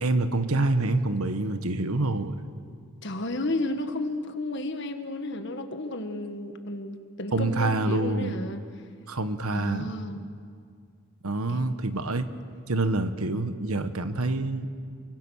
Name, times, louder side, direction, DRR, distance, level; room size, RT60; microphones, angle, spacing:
voice 1, 0.0-2.4 7.3-8.3 9.1-9.9 11.2-12.3 12.7-14.7, right 2 dB, 85° right, 10 dB, 1.4 m, -26 dB
voice 2, 3.0-8.6 9.5-10.3 11.5-11.7, left 1 dB, 55° left, 7 dB, 1.6 m, -32 dB
28.0 x 24.5 x 6.4 m, 2.2 s
head